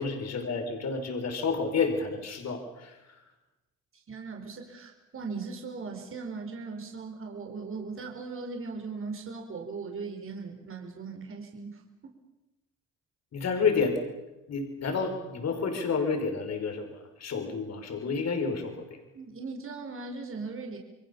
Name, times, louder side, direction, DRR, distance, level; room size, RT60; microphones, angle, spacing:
voice 1, 0.0-3.0 13.3-14.0 14.5-16.9 17.2-18.8, left 5 dB, 60° left, 5 dB, 5.4 m, -29 dB
voice 2, 4.1-12.1 19.1-20.8, right 4 dB, 45° right, 2 dB, 4.8 m, -39 dB
29.0 x 22.5 x 7.2 m, 1.0 s
cardioid pair, 90°, 30 cm